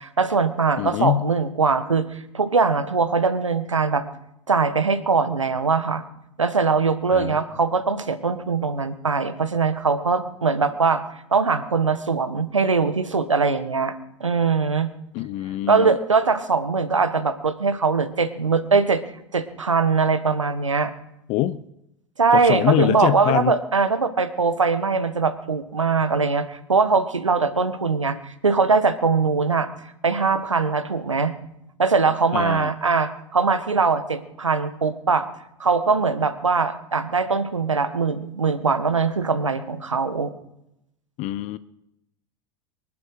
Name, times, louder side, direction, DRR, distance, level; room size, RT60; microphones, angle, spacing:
voice 1, 0.0-4.0 4.5-6.0 6.4-11.0 11.3-13.9 14.2-14.9 15.7-19.0 19.3-20.9 22.2-29.7 30.0-31.3 31.8-35.3 35.6-40.3, right 4 dB, 90° right, 11 dB, 1.5 m, -21 dB
voice 2, 0.8-1.2 7.1-7.4 15.1-16.0 21.3-21.6 22.3-23.5 32.3-32.7 41.2-41.6, left 14 dB, 45° left, 16 dB, 0.7 m, -24 dB
24.0 x 11.0 x 4.9 m, 0.84 s
figure-of-eight pair, 85°, 16 cm